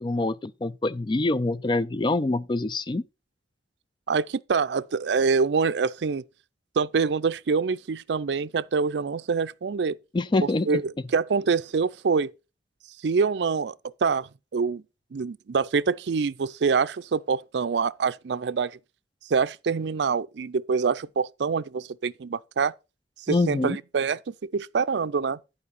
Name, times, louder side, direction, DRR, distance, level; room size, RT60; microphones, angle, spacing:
voice 1, 0.0-3.0 10.1-10.8 23.3-23.8, left 2 dB, 25° left, 0.4 m, -25 dB
voice 2, 4.1-6.2 6.8-10.0 10.7-12.3 13.0-13.7 14.0-14.8 15.1-18.8 19.3-22.7 23.5-25.4, right 5 dB, 70° right, 0.4 m, -25 dB
11.0 x 4.9 x 5.3 m
head